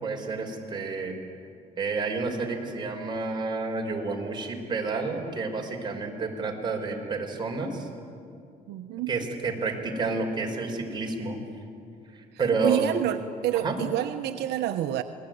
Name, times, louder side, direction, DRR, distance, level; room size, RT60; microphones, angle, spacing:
voice 1, 0.0-1.1 1.8-7.9 9.1-11.4 12.1-12.9 13.6-13.8, right 3 dB, 25° right, 0 dB, 5.3 m, -30 dB
voice 2, 8.7-9.1 12.6-15.0, right 12 dB, 80° right, 6 dB, 1.1 m, -28 dB
28.5 x 20.5 x 9.4 m, 2.5 s
cardioid pair, 110°, 17 cm